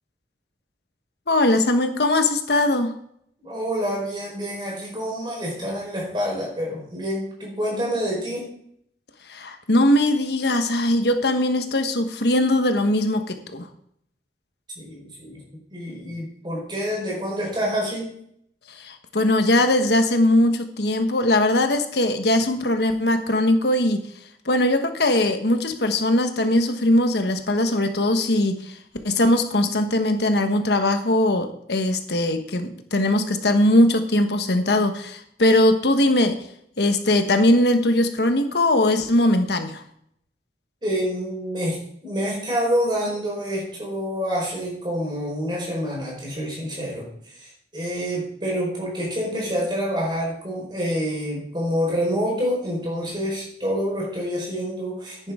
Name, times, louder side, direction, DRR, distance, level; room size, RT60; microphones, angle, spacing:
voice 1, 1.3-2.9 9.3-13.7 18.7-24.1 24.4-28.8 29.0-36.4 36.8-39.8, left 1 dB, 70° left, 7 dB, 1.3 m, -20 dB
voice 2, 3.4-8.4 14.7-18.1 40.8-55.3, equal, 25° right, -2 dB, 4.7 m, -27 dB
10.5 x 9.7 x 3.7 m, 0.69 s
head